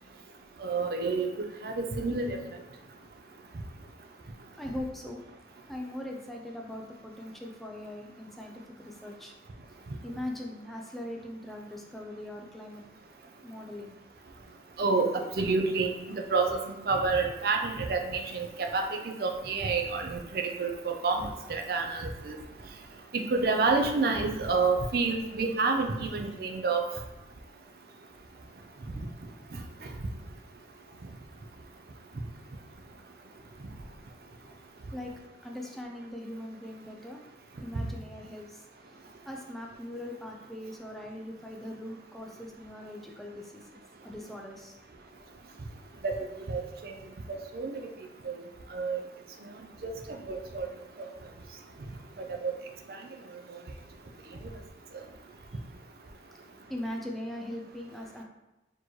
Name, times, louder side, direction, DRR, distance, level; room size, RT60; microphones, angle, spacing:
voice 1, 0.6-1.3 1.6-2.4 14.8-21.2 21.5-22.4 23.1-26.8 46.0-46.2 46.5-46.9 47.3-47.8 48.2-48.3 48.7-49.0 49.8-49.9 50.3-50.7 52.2-52.5 53.5-53.6, right 4 dB, 55° right, 3 dB, 0.5 m, -29 dB
voice 2, 4.5-5.2 5.7-9.3 10.0-12.8 13.4-13.9 34.9-35.1 35.4-37.2 37.6-38.6 39.3-44.8 56.7-58.2, left 1 dB, ahead, 0 dB, 0.4 m, -40 dB
4.3 x 2.9 x 3.1 m, 1.0 s
head